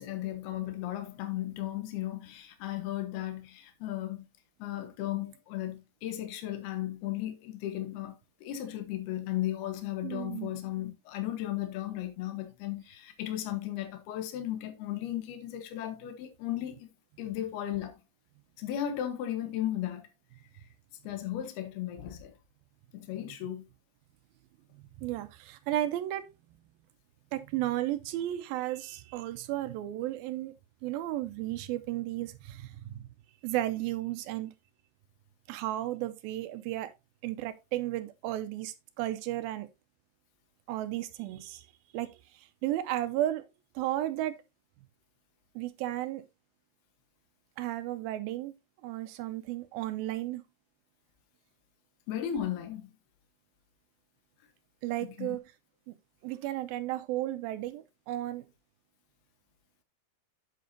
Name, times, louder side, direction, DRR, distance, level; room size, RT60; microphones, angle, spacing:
voice 1, 0.0-4.3 4.6-16.9 17.2-18.0 18.6-20.1 21.0-22.3 22.9-23.7 52.1-52.9 55.2-55.4, left 12 dB, 75° left, 3.2 m, -35 dB
voice 2, 10.0-10.5 25.0-26.3 27.3-30.5 30.8-33.1 33.4-34.5 35.5-36.9 37.2-39.7 40.7-41.7 41.9-43.4 43.8-44.4 45.6-46.3 47.6-48.5 48.8-50.4 54.8-55.4 55.9-56.0 56.2-58.5, right 14 dB, 80° right, 2.2 m, -34 dB
8.6 x 7.6 x 2.7 m
omnidirectional pair, 4.6 m